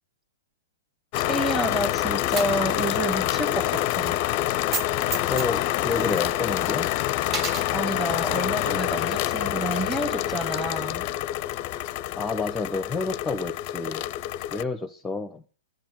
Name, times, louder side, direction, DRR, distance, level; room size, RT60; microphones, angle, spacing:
sound 1, 1.1-14.6, left 14 dB, 40° left, 0.5 m, -27 dB
voice 1, 1.2-4.2 7.7-11.1, right 1 dB, 10° right, 1.7 m, -29 dB
Coin (dropping), 2.4-3.2 3.5-3.6 4.6-4.9 5.1-6.7 7.2-7.7, right 3 dB, 25° right, 1.6 m, -32 dB
voice 2, 5.3-6.9 12.2-14.1 14.5-15.4, left 3 dB, 10° left, 0.8 m, -29 dB
12.0 x 7.8 x 8.8 m
hypercardioid pair, 120°, 0 cm